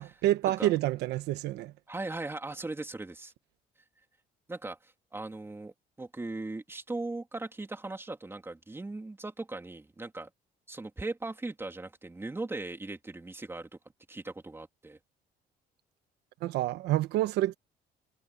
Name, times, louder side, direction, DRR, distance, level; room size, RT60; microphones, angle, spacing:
voice 1, 0.0-1.7 16.4-17.6, right 14 dB, 85° right, 1.1 m, -28 dB
voice 2, 1.9-3.3 4.5-10.3 10.7-13.7 14.1-15.0, right 2 dB, 15° right, 3.3 m, -39 dB
cardioid pair, 110°, 17 cm